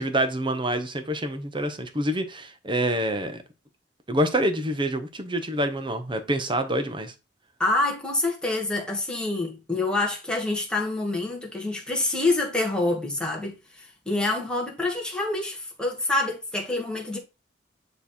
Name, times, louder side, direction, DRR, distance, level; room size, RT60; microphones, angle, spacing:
voice 1, 0.0-3.4 4.1-7.1, right 1 dB, 30° right, 1.1 m, -26 dB
voice 2, 7.6-17.2, left 2 dB, 5° left, 1.8 m, -27 dB
9.6 x 3.4 x 4.3 m
head